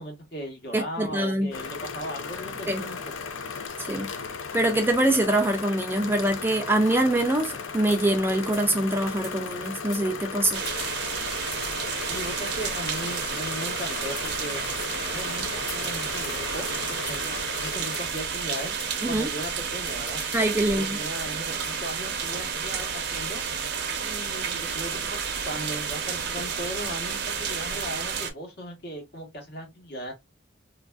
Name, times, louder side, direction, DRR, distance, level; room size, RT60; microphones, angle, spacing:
voice 1, 0.0-3.3 12.1-14.6 15.1-18.7 19.1-20.2 20.7-23.4 24.0-30.1, equal, 55° left, 1.1 m, -37 dB
voice 2, 0.7-1.5 2.7-2.8 3.9-4.1 4.5-10.6 19.0-19.3 20.3-21.0, right 1 dB, 10° right, 0.4 m, -24 dB
sound 1, 1.5-18.0, left 5 dB, 80° left, 0.5 m, -36 dB
sound 2, 7.9-8.2 8.5-8.7 9.2-9.4 9.9-10.3 10.7-10.8 11.5-12.2 13.0-13.4 14.0-14.4 14.7-15.0 15.7-16.4 17.1-17.3 17.9-18.1 18.4-18.5 18.8-18.9 19.4-21.7, left 3 dB, 25° left, 1.1 m, -44 dB
sound 3, 10.5-28.3, right 6 dB, 55° right, 0.6 m, -31 dB
3.2 x 2.5 x 2.2 m
head